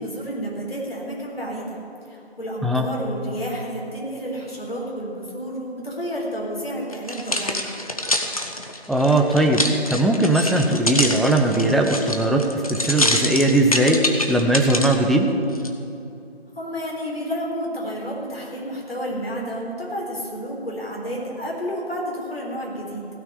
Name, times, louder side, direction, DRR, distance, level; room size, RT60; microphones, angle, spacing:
voice 1, 0.0-1.8 2.1-7.8 16.5-23.1, equal, 65° left, -3 dB, 3.9 m, -30 dB
sound 1, 6.9-15.0 15.6-15.7, left 1 dB, 35° left, 0.8 m, -25 dB
voice 2, 8.9-12.4 12.7-14.0 14.3-15.3, right 1 dB, ahead, 2 dB, 0.4 m, -19 dB
16.0 x 6.2 x 9.7 m, 2.7 s
figure-of-eight pair, 165°, 32 cm